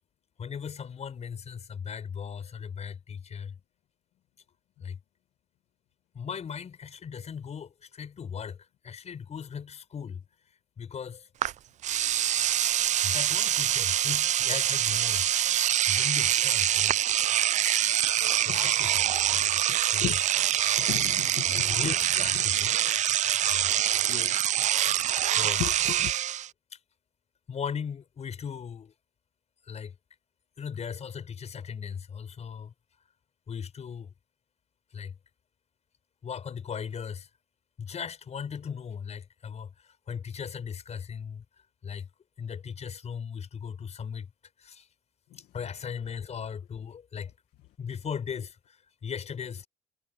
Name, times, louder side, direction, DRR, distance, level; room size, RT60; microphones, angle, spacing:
voice 1, 0.4-3.5 4.8-5.0 6.1-8.6 8.8-10.2 10.8-11.3 13.0-15.2 15.9-17.1 18.0-19.5 19.9-20.2 21.5-22.7 23.5-23.7 25.4-25.6 27.5-28.9 29.7-29.9 30.6-32.7 33.5-34.1 34.9-35.1 36.2-37.3 37.8-39.7 40.1-41.4 41.8-42.1 42.4-44.3 44.6-44.9 45.5-47.3 47.8-48.6 49.0-49.7, left 7 dB, 40° left, 6.0 m, -37 dB
Engine / Domestic sounds home sounds, 11.4-11.5 11.8-26.5, right 11 dB, 45° right, 0.4 m, -25 dB
voice 2, 19.7-20.4 20.8-21.9 22.3-22.5 22.7-22.9 24.1-24.4 24.9-25.1 25.6-26.1 45.3-45.4, left 14 dB, 80° left, 1.7 m, -37 dB
cardioid pair, 110°, 17 cm